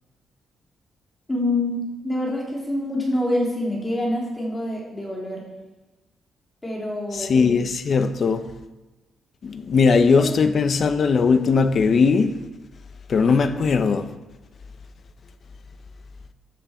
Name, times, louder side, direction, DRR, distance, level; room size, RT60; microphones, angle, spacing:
voice 1, 1.3-5.4 6.6-7.3 9.8-10.4, left 1 dB, 15° left, 3.3 m, -26 dB
voice 2, 7.1-8.5 9.4-12.3 13.1-14.1, left 5 dB, 50° left, 0.9 m, -19 dB
15.0 x 9.8 x 4.5 m
cardioid pair, 115°, 0 cm